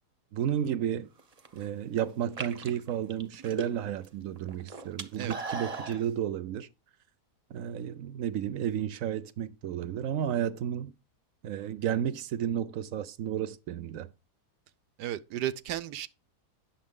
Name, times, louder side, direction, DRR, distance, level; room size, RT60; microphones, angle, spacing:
voice 1, 0.3-1.1 1.5-6.7 7.5-10.9 11.4-14.1, right 10 dB, 65° right, 0.9 m, -32 dB
sound 1, 1.2-1.6 2.2-4.1 4.4-6.0, right 4 dB, 35° right, 0.7 m, -37 dB
voice 2, 15.0-16.1, right 12 dB, 90° right, 1.3 m, -34 dB
9.8 x 7.2 x 3.7 m
omnidirectional pair, 1.7 m